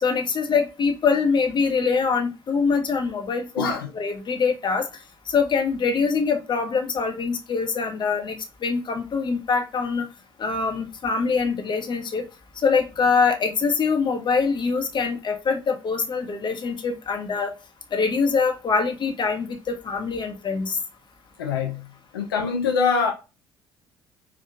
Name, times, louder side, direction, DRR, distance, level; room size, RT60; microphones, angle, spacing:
voice 1, 0.0-4.8 5.3-8.4 8.6-10.1 10.4-12.2 12.6-17.5 17.9-20.8, left 5 dB, 40° left, 1.0 m, -24 dB
voice 2, 3.6-3.9 21.4-21.8 22.1-23.1, left 5 dB, 85° left, 0.4 m, -23 dB
4.6 x 2.4 x 2.3 m
hypercardioid pair, 50°, 11 cm